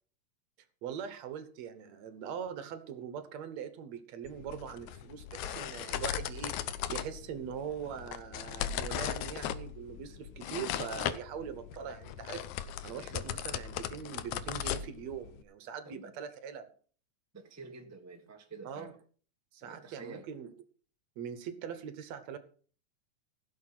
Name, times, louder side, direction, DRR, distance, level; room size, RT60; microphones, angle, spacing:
voice 1, 0.8-6.6 6.9-16.7 18.6-18.9 19.5-20.5 21.2-22.4, right 8 dB, 70° right, 11 dB, 2.2 m, -42 dB
sound 1, 4.3-15.4, left 10 dB, 80° left, 2.2 m, -38 dB
voice 2, 17.3-19.0 19.6-20.3, right 3 dB, 10° right, 4 dB, 0.7 m, -48 dB
16.0 x 6.8 x 6.1 m, 0.43 s
omnidirectional pair, 3.4 m